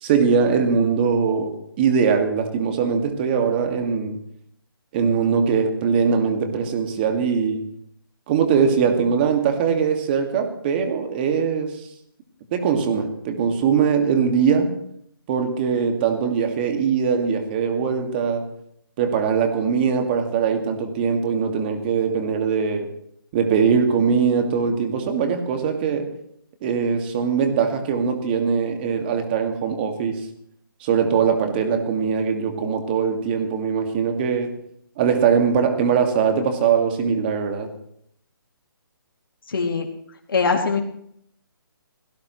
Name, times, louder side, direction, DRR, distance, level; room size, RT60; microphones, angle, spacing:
voice 1, 0.0-4.2 4.9-7.6 8.3-11.8 12.5-14.8 15.3-18.5 19.0-22.9 23.3-26.1 26.6-30.2 30.8-34.6 35.0-37.7, right 6 dB, 25° right, 6 dB, 2.0 m, -21 dB
voice 2, 39.5-39.9 40.3-40.8, left 5 dB, 70° left, 1 dB, 2.6 m, -21 dB
26.0 x 17.5 x 3.1 m, 0.70 s
hypercardioid pair, 160°, 12 cm